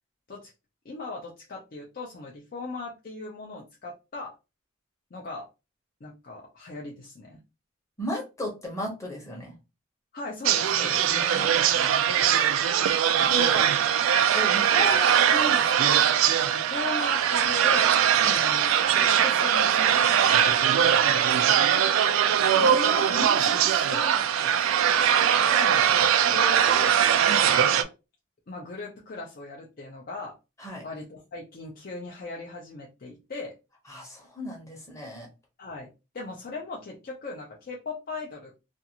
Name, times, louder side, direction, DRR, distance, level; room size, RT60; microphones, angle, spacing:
voice 1, 0.8-4.3 5.1-5.5 6.0-7.4 10.1-12.3 16.5-18.7 19.0-21.4 25.5-27.0 27.7-27.9 28.5-30.4 30.8-33.6 35.6-35.9 36.1-38.5, left 3 dB, 45° left, -2 dB, 0.5 m, -38 dB
voice 2, 8.0-9.5 13.2-13.7 14.3-15.9 18.2-18.4 22.3-24.7 27.2-27.5 30.6-30.8 33.9-35.3, equal, 15° left, 0 dB, 0.8 m, -34 dB
sound 1, 10.5-27.8, right 9 dB, 75° right, 0.3 m, -21 dB
2.5 x 2.4 x 2.8 m, 0.27 s
head